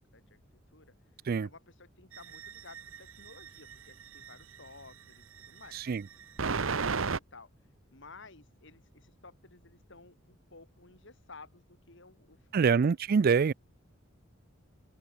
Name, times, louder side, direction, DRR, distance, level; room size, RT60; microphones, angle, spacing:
voice 1, 0.7-12.8, left 3 dB, 65° left, 7.5 m, -55 dB
sound 1, 2.1-4.6 5.4-7.2, right 5 dB, 75° right, 1.0 m, -34 dB
voice 2, 12.5-13.5, right 5 dB, 50° right, 0.4 m, -24 dB
open air
head